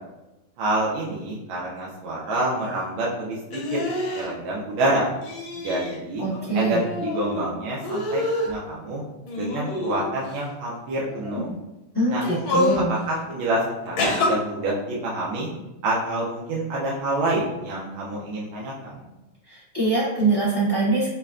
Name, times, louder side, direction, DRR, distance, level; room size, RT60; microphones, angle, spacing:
voice 1, 0.6-3.8 4.1-5.1 5.6-6.2 6.5-9.0 9.4-11.5 12.1-12.3 12.9-15.5 15.8-19.0, right 1 dB, 80° right, -5 dB, 1.5 m, -27 dB
sound 1, 3.5-4.3 5.2-6.0 6.3-7.4 7.8-8.5 9.3-10.3 11.1-11.4 12.2-12.8 14.0-14.3, left 2 dB, 80° left, 1.6 m, -27 dB
voice 2, 6.2-6.8 11.9-12.9 19.5-21.1, right 2 dB, 25° left, -10 dB, 0.4 m, -23 dB
5.4 x 2.1 x 2.4 m, 0.99 s
omnidirectional pair, 2.3 m